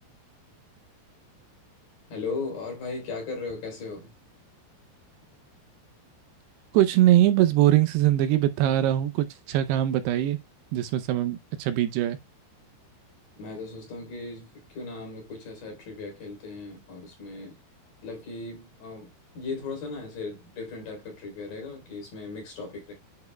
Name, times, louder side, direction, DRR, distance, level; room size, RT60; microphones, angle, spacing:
voice 1, 2.1-4.1 13.4-17.6 18.0-22.9, left 4 dB, 50° left, 5.1 m, -37 dB
voice 2, 6.7-10.4 10.7-12.2, right 13 dB, 80° right, 2.6 m, -22 dB
10.5 x 5.2 x 2.2 m
omnidirectional pair, 5.0 m